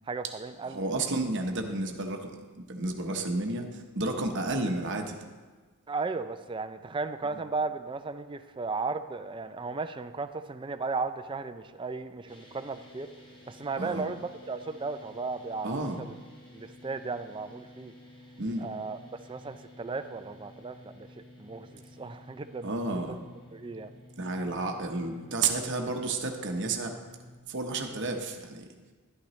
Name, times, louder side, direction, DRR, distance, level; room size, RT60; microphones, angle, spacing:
voice 1, 0.1-0.8 5.9-13.1 13.5-16.1 16.5-17.9 18.6-19.0 19.3-21.1 21.4-23.2 23.5-23.9, right 4 dB, 20° right, 10 dB, 0.4 m, -35 dB
voice 2, 0.6-2.3 2.7-5.2 13.8-14.0 15.6-16.0 18.4-18.6 22.6-23.2 24.2-27.0 27.5-28.7, right 3 dB, 55° right, 4 dB, 0.9 m, -31 dB
sound 1, 12.3-27.4, left 1 dB, 20° left, 1.1 m, -52 dB
11.5 x 11.5 x 3.2 m, 1.4 s
head